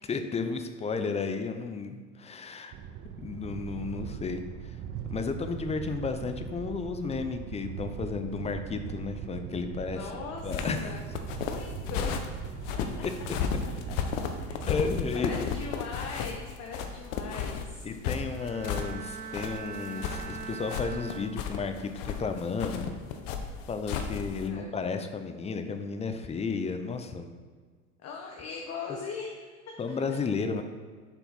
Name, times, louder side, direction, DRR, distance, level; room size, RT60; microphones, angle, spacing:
voice 1, 0.1-2.7 3.2-4.8 5.1-10.1 10.4-11.0 13.0-13.1 14.7-15.5 17.8-22.9 23.7-27.3 29.8-30.6, left 4 dB, 15° left, 8 dB, 0.5 m, -33 dB
sound 1, 2.7-14.7, right 8 dB, 35° right, 0.5 m, -40 dB
voice 2, 9.9-12.2 12.7-12.8 13.6-14.0 14.4-14.5 15.1-17.8 24.3-24.7 28.0-29.6, left 4 dB, 40° left, 0 dB, 1.0 m, -40 dB
sound 2, 10.4-24.5, left 7 dB, 65° left, 0.9 m, -34 dB
Bowed string instrument, 18.3-21.9 22.3-22.7, right 7 dB, 85° right, 0.8 m, -42 dB
7.0 x 4.5 x 4.0 m, 1.5 s
hypercardioid pair, 95°, 40 cm